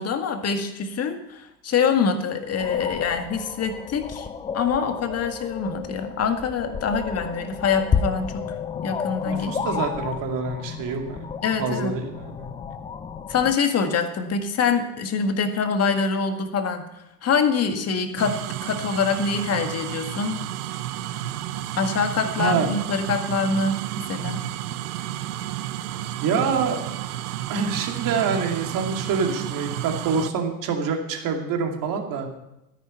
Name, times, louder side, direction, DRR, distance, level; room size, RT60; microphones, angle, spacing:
voice 1, 0.0-4.3 4.5-9.8 11.4-12.0 13.3-16.8 17.2-20.4 21.8-24.4, left 5 dB, 30° left, 6 dB, 1.8 m, -25 dB
sound 1, 2.6-13.6, left 6 dB, 10° left, 0.4 m, -31 dB
voice 2, 9.2-11.3 11.6-12.5 22.4-22.7 26.2-26.8 27.5-32.3, right 5 dB, 40° right, 3 dB, 2.5 m, -26 dB
sound 2, 18.2-30.3, right 13 dB, 65° right, 0.8 m, -31 dB
13.5 x 10.0 x 5.5 m, 0.91 s
hypercardioid pair, 90°, 48 cm